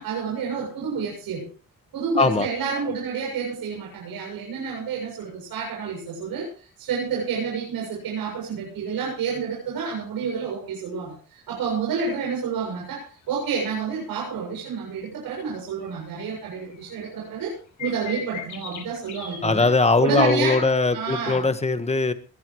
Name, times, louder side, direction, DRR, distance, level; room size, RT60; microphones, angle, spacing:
voice 1, 0.0-1.5 1.9-19.7 20.0-21.4, right 5 dB, 85° right, -1 dB, 7.4 m, -29 dB
voice 2, 2.2-2.5 19.4-22.1, left 3 dB, 20° left, 10 dB, 1.5 m, -20 dB
sound 1, 14.0-14.1 14.7-14.8 15.8-15.9 16.2-16.3 16.6-17.0 17.8-19.4 20.2-20.3, left 8 dB, 55° left, 6.0 m, -37 dB
21.5 x 16.0 x 3.1 m, 0.37 s
cardioid pair, 120°, 34 cm